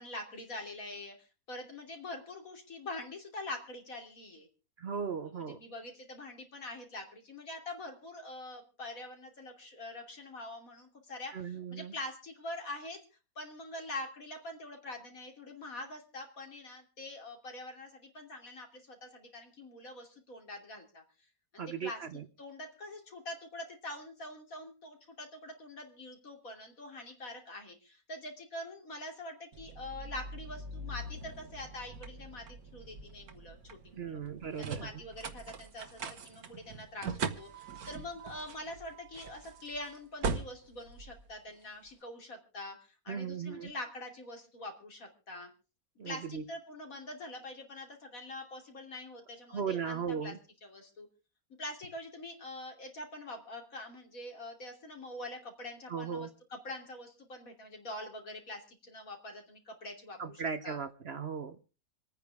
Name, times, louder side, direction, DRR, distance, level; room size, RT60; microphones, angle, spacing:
voice 1, 0.0-4.5 5.3-13.0 13.3-21.0 21.5-22.0 22.4-34.2 34.6-42.8 43.0-45.5 46.0-50.3 50.6-51.1 51.6-60.8, left 1 dB, 70° left, 3 dB, 3.4 m, -44 dB
voice 2, 4.8-5.6 11.3-11.9 21.6-22.2 33.9-35.0 43.1-43.7 46.0-46.4 49.5-50.4 55.9-56.3 60.2-61.6, right 6 dB, 50° right, 10 dB, 1.0 m, -37 dB
sound 1, 29.5-41.9, right 4 dB, 90° right, 1.8 m, -42 dB
27.0 x 9.5 x 3.5 m, 0.34 s
omnidirectional pair, 1.5 m